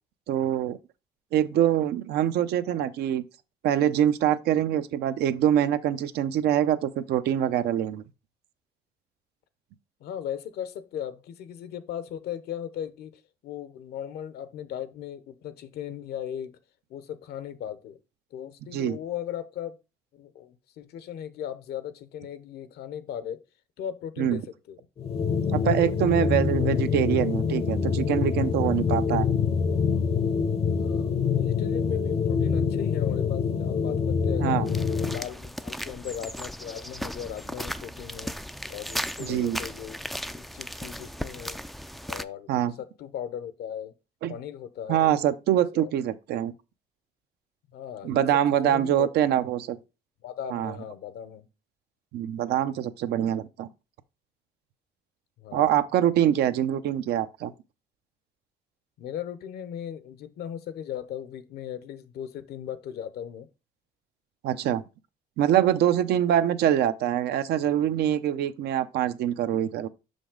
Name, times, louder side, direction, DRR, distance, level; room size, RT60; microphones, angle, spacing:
voice 1, 0.3-0.8 1.3-3.2 3.6-8.0 18.7-19.0 24.2-24.4 25.5-29.3 34.4-34.7 39.2-39.6 42.5-42.7 44.2-44.3 44.9-46.5 48.0-49.8 50.5-50.7 52.1-53.7 55.5-57.5 64.4-64.8 65.4-69.9, right 11 dB, 75° right, 0.6 m, -24 dB
voice 2, 10.0-16.5 16.9-18.0 18.3-19.7 20.1-23.4 23.8-24.9 30.7-34.6 34.9-38.4 38.7-40.0 40.3-41.6 42.1-42.5 42.8-43.9 44.3-45.1 45.7-45.9 47.7-49.1 50.2-51.5 55.4-55.8 59.0-63.5, left 9 dB, 75° left, 0.9 m, -37 dB
sound 1, 25.0-35.2, left 6 dB, 35° left, 0.6 m, -25 dB
sound 2, 34.7-42.2, equal, ahead, 0.3 m, -36 dB
6.3 x 5.2 x 3.7 m
cardioid pair, 110°, 17 cm